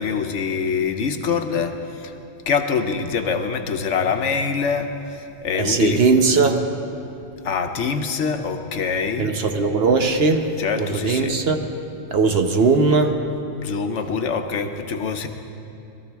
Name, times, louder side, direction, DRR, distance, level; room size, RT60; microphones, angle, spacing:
voice 1, 0.0-1.7 2.5-4.9 5.4-6.0 7.4-9.3 10.6-11.4 13.6-15.3, left 5 dB, 75° left, 6 dB, 1.1 m, -24 dB
voice 2, 5.6-6.6 9.2-10.5 10.7-11.7 12.1-13.2, right 4 dB, 55° right, 5 dB, 1.1 m, -19 dB
21.0 x 13.5 x 3.4 m, 2.7 s
omnidirectional pair, 1.3 m